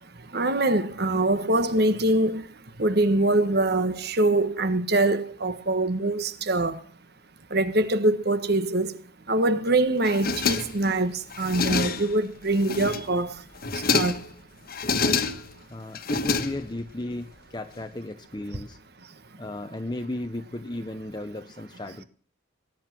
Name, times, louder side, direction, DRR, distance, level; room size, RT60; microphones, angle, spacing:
voice 1, 0.0-6.9 7.5-13.4 13.7-14.3, right 2 dB, 50° right, 1.4 m, -24 dB
sound 1, 10.0-10.9 11.3-12.2 12.6-13.2 13.6-14.3 14.7-15.6 16.0-16.9, left 4 dB, 45° left, 1.4 m, -27 dB
voice 2, 15.7-18.8 19.4-22.0, left 1 dB, 20° left, 0.7 m, -34 dB
20.0 x 10.5 x 6.1 m
head